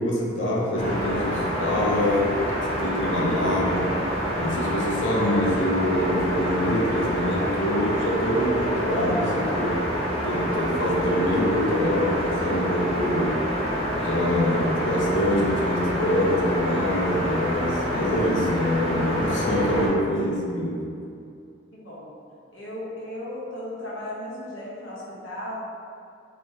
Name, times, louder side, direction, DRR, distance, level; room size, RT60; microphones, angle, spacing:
voice 1, 0.0-2.3 2.7-4.0 4.4-9.8 10.2-13.5 14.0-20.8, left 1 dB, 70° left, -2 dB, 0.6 m, -25 dB
sound 1, 0.7-19.9, equal, 35° left, 1.0 m, -27 dB
voice 2, 21.7-22.1 22.5-25.6, left 1 dB, 85° left, -8 dB, 1.0 m, -36 dB
3.3 x 2.9 x 2.8 m, 2.4 s
head